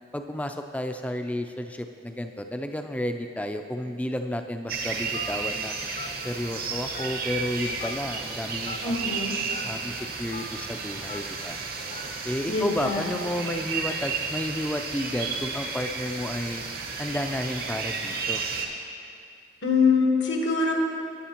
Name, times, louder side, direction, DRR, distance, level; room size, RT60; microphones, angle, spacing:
voice 1, 0.1-5.7 6.2-9.1 9.6-11.6 12.2-16.6 17.0-18.4, left 1 dB, 10° left, 6 dB, 0.4 m, -32 dB
sound 1, 4.7-18.7, right 5 dB, 55° right, 0.9 m, -33 dB
Telephone, 5.1-5.4 6.0-6.1 6.9-7.3 7.8-7.9 8.6-8.8 9.5-9.6 10.3-10.4 11.1-11.2 11.9-12.1 12.8-13.0, left 4 dB, 45° left, 0.6 m, -38 dB
voice 2, 8.8-9.4 12.4-13.1 19.6-20.7, left 4 dB, 80° left, 1 dB, 1.4 m, -24 dB
14.5 x 8.8 x 2.9 m, 2.5 s
head